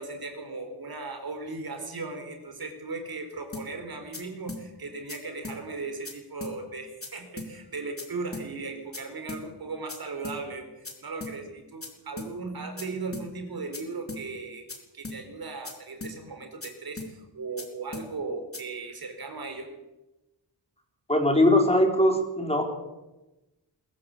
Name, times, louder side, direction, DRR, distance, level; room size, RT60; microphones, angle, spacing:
voice 1, 0.0-14.6 14.9-19.7, right 3 dB, 60° right, 5 dB, 4.4 m, -37 dB
sound 1, 3.5-3.7 4.1-4.2 4.5-4.6 5.1-5.2 5.4-5.6 6.0-6.1 6.4-6.5 7.0-7.1 7.4-7.5 8.0-8.1 8.3-8.5 8.9-9.0 9.3-9.4 9.9-10.0 10.2-10.4 10.8-10.9 11.2-11.3 11.8-11.9 12.2-12.3 12.8-12.9 13.1-13.3 13.7-13.8 14.1-14.2 14.7-14.8 15.0-15.2 15.6-15.7 16.0-16.1 16.6-16.7 17.0-17.1 17.6-17.7 17.9-18.1 18.5-18.6, left 2 dB, 30° left, 4.3 m, -38 dB
voice 2, 21.1-22.6, left 1 dB, 15° left, 3 dB, 4.3 m, -21 dB
22.0 x 14.5 x 8.5 m, 1.0 s
wide cardioid pair, 95°, 41 cm